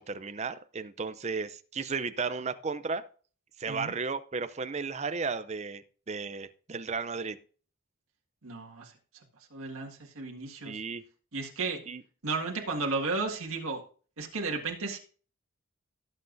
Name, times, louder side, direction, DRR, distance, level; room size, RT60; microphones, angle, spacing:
voice 1, 0.0-3.1 3.6-7.4 10.6-11.0 11.9-12.0, right 4 dB, 30° right, 12 dB, 0.5 m, -34 dB
voice 2, 8.4-8.9 9.5-10.8 11.3-11.8 12.2-13.8 14.2-15.0, right 3 dB, 80° right, 0 dB, 1.8 m, -33 dB
17.5 x 7.8 x 2.6 m, 0.41 s
head